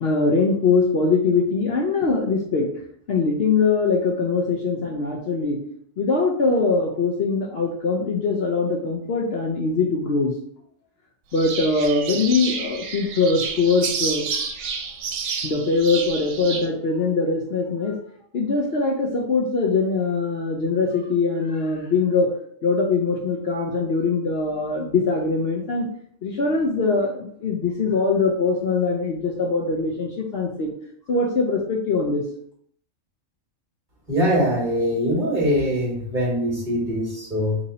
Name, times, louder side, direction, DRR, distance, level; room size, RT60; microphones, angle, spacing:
voice 1, 0.0-2.7 3.1-5.6 6.0-10.3 11.3-14.5 15.4-18.0 18.3-22.3 22.6-25.9 26.2-30.7 31.1-32.3, left 4 dB, 55° left, 0 dB, 0.8 m, -22 dB
sound 1, 11.3-16.7, right 5 dB, 90° right, 1.1 m, -30 dB
voice 2, 34.1-37.6, equal, 35° right, -4 dB, 2.2 m, -22 dB
4.1 x 2.8 x 4.1 m, 0.64 s
omnidirectional pair, 1.3 m